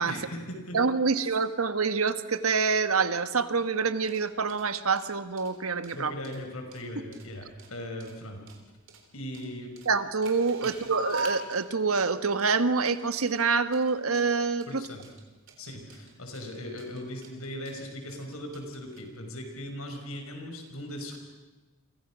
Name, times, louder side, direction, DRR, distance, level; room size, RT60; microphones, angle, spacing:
voice 1, 0.0-0.8 1.2-1.3 5.9-8.4 9.1-9.7 10.6-10.7 14.7-15.0 15.6-21.2, left 1 dB, 85° left, 4 dB, 5.8 m, -39 dB
voice 2, 0.7-6.1 9.8-14.8, right 4 dB, 90° right, 11 dB, 1.4 m, -26 dB
sound 1, 3.8-19.0, right 2 dB, 60° right, 3.7 m, -43 dB
30.0 x 25.0 x 6.2 m, 1.2 s
head